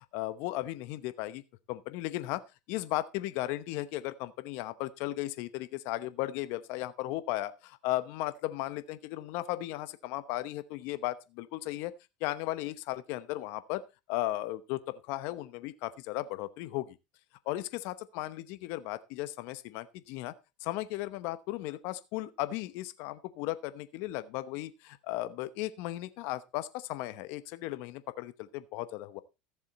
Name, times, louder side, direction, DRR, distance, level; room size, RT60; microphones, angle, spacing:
voice 1, 0.1-1.4 1.7-2.4 2.7-11.9 12.2-13.8 14.1-17.0 17.5-20.3 20.6-29.2, left 16 dB, 65° left, 13 dB, 0.9 m, -36 dB
14.0 x 7.3 x 4.2 m, 0.26 s
supercardioid pair, 105°, 4 cm